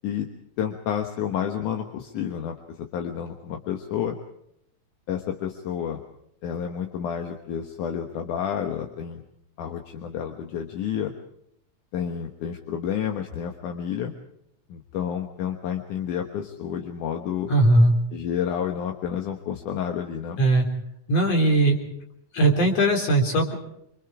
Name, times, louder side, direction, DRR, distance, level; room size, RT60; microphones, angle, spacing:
voice 1, 0.6-4.2 5.1-6.0 6.4-9.2 9.6-11.1 11.9-14.1 14.7-17.5 18.1-20.4, left 8 dB, 75° left, 4 dB, 2.9 m, -30 dB
voice 2, 17.5-17.9 20.4-20.7 21.1-21.8 22.3-23.5, right 2 dB, 50° left, 2 dB, 4.7 m, -19 dB
26.0 x 26.0 x 4.9 m, 0.73 s
omnidirectional pair, 3.6 m